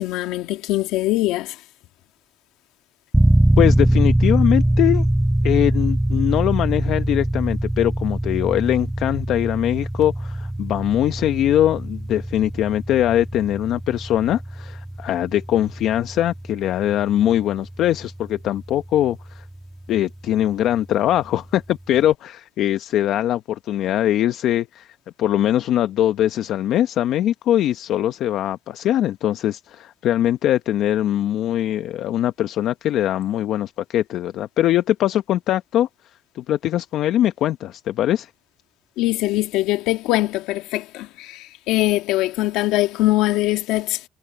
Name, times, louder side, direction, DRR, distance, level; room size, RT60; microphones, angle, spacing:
voice 1, 0.0-1.6 39.0-44.1, left 17 dB, 85° left, 2.1 m, -22 dB
sound 1, 3.1-19.9, right 1 dB, 5° right, 1.7 m, -23 dB
voice 2, 3.6-5.1 5.4-19.4 19.9-35.9 36.3-38.3, left 12 dB, 70° left, 0.8 m, -21 dB
supercardioid pair, 90°, 0 cm